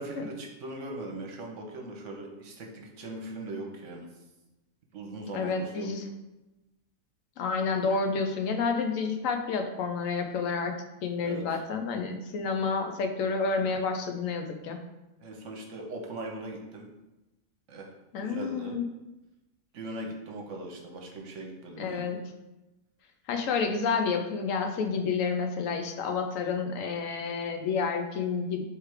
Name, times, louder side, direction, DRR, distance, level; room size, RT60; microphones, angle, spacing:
voice 1, 0.0-4.1 4.9-5.9 11.2-11.6 15.2-16.9 17.7-17.9 18.2-18.8 19.7-22.1, right 1 dB, 70° right, 1 dB, 1.1 m, -40 dB
voice 2, 5.3-6.0 7.4-10.8 11.0-14.8 18.1-18.9 21.8-22.2 23.3-28.7, left 5 dB, 80° left, 5 dB, 1.0 m, -29 dB
3.4 x 3.2 x 4.7 m, 1.0 s
omnidirectional pair, 1.4 m